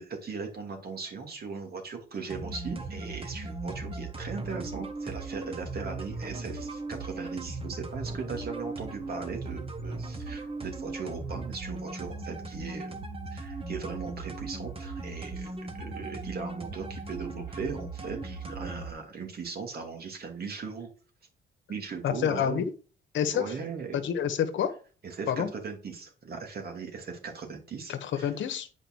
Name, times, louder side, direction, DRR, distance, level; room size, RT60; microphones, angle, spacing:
voice 1, 0.0-13.0 13.3-20.9 21.7-22.6 23.3-24.0 25.0-28.3, right 5 dB, 50° right, 2.6 m, -38 dB
sound 1, 2.3-18.9, right 3 dB, 30° right, 1.4 m, -38 dB
voice 2, 22.0-22.6 23.1-23.4 24.0-24.7 25.3-25.5 27.9-28.7, left 9 dB, 70° left, 1.2 m, -28 dB
8.9 x 5.1 x 4.6 m
cardioid pair, 90°, 20 cm